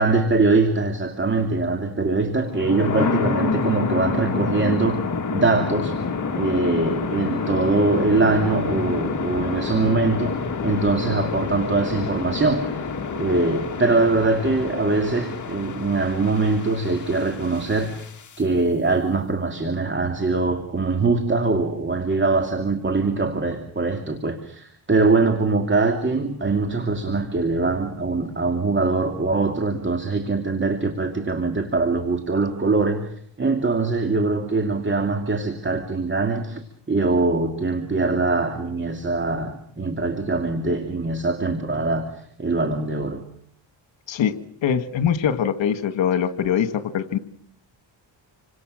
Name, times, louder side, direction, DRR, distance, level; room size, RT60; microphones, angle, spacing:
voice 1, 0.0-5.0 5.3-6.0 6.4-12.9 13.2-18.1 18.4-43.2, right 3 dB, 25° right, 6 dB, 2.5 m, -22 dB
sound 1, 2.4-18.4, left 4 dB, 40° left, 2.4 m, -28 dB
voice 2, 44.6-47.2, left 8 dB, 75° left, 11 dB, 1.9 m, -22 dB
28.0 x 25.5 x 6.4 m, 0.63 s
cardioid pair, 100°, 45 cm